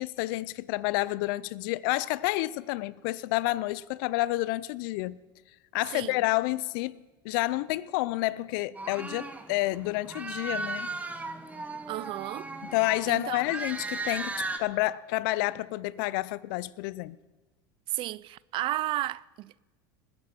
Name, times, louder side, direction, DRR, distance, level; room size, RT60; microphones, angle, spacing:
voice 1, 0.0-5.2 5.7-10.9 12.7-17.2, left 19 dB, 70° left, 0.5 m, -29 dB
sound 1, 8.7-14.6, right 3 dB, 15° right, 1.0 m, -37 dB
voice 2, 11.9-12.5 13.1-13.4 17.9-19.6, right 16 dB, 50° right, 0.4 m, -33 dB
20.0 x 9.5 x 4.3 m
supercardioid pair, 100°, 12 cm